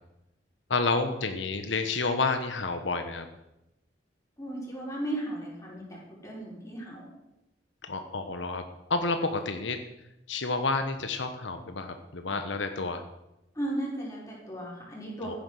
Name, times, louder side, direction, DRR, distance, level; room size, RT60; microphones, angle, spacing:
voice 1, 0.7-3.3 7.8-8.6 8.9-9.8 10.3-13.0 15.2-15.4, left 3 dB, 85° left, 7 dB, 1.2 m, -29 dB
voice 2, 4.4-7.1 13.5-15.4, right 1 dB, 15° left, -4 dB, 5.4 m, -36 dB
14.5 x 10.0 x 6.6 m, 0.90 s
head